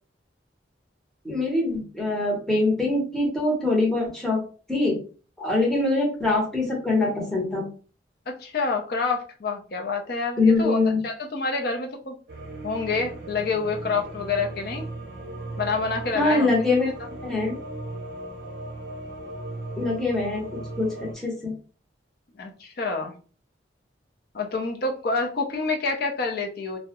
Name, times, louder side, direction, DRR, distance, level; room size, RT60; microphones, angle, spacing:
voice 1, 1.2-4.4 4.7-5.0 5.4-7.6 10.4-11.0 16.1-16.9 17.2-17.5 19.8-20.4 20.8-21.5, left 2 dB, 5° left, -3 dB, 0.7 m, -23 dB
voice 2, 8.3-12.2 12.6-14.9 15.6-16.8 22.4-23.1 24.3-26.8, left 4 dB, 55° left, 2 dB, 0.5 m, -27 dB
sound 1, 12.3-21.1, right 2 dB, 55° right, 0.6 m, -37 dB
2.3 x 2.0 x 2.8 m, 0.38 s
head